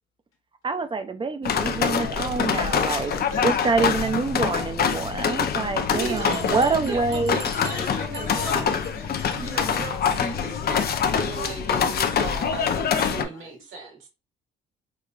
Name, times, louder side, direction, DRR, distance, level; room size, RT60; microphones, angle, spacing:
voice 1, 0.6-3.1 3.4-7.4, right 4 dB, 25° right, 0.5 m, -26 dB
sound 1, 1.4-13.2, left 7 dB, 55° left, 0.5 m, -25 dB
voice 2, 2.7-3.8 4.2-4.4 5.4-5.8 6.3-6.9 7.5-9.5 13.2-13.6, left 4 dB, 80° left, 1.3 m, -38 dB
voice 3, 5.9-8.6 9.4-13.9, right 4 dB, 85° right, 1.3 m, -35 dB
Bell, 6.2-8.9 9.2-9.4 9.7-9.8 10.1-10.2 10.5-10.6, right 1 dB, 55° right, 1.1 m, -42 dB
4.8 x 2.4 x 2.4 m
cardioid pair, 90°, 20 cm